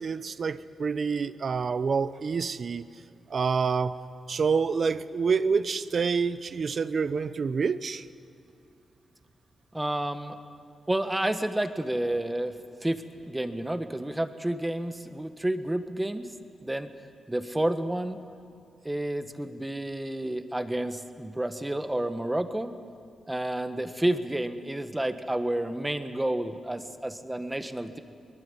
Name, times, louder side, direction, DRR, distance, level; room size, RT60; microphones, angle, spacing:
voice 1, 0.0-2.9 3.3-4.0 4.3-8.0, right 5 dB, 55° right, 15 dB, 0.8 m, -27 dB
voice 2, 9.7-10.4 10.9-12.5 12.8-16.3 16.6-16.9 17.3-18.2 18.8-22.8 23.3-28.0, right 1 dB, 10° right, 10 dB, 1.4 m, -30 dB
22.5 x 20.0 x 9.8 m, 2.5 s
cardioid pair, 80°, 0 cm